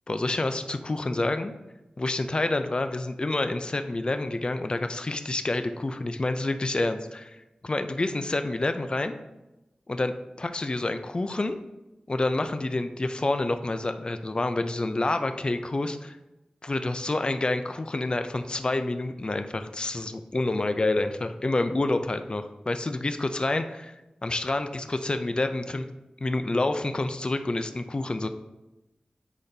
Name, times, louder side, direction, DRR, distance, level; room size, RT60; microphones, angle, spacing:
voice 1, 0.1-1.5 2.0-7.4 7.6-9.1 9.9-11.6 12.1-16.2 16.6-23.9 24.2-25.9 26.2-28.3, left 2 dB, 40° left, 8 dB, 0.5 m, -28 dB
9.9 x 4.2 x 2.7 m, 0.99 s
wide cardioid pair, 75°, 3 cm